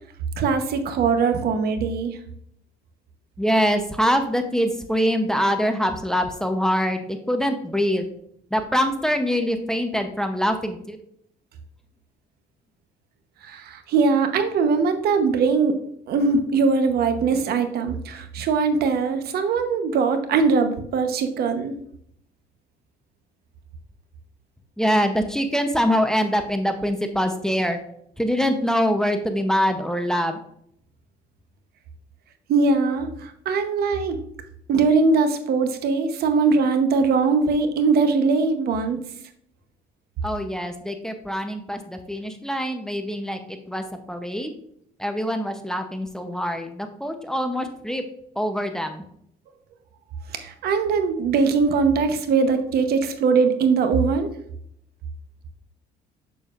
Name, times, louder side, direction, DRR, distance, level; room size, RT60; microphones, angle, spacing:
voice 1, 0.4-2.2 13.4-15.8 16.1-21.7 32.5-34.2 34.7-39.0 50.3-54.3, right 4 dB, 65° right, 7 dB, 0.9 m, -21 dB
voice 2, 3.4-8.0 8.5-11.0 24.8-27.8 28.2-30.4 40.2-44.5 45.0-48.0 48.4-49.0, equal, 5° left, 6 dB, 0.7 m, -24 dB
6.9 x 6.9 x 2.4 m, 0.70 s
cardioid pair, 110°, 17 cm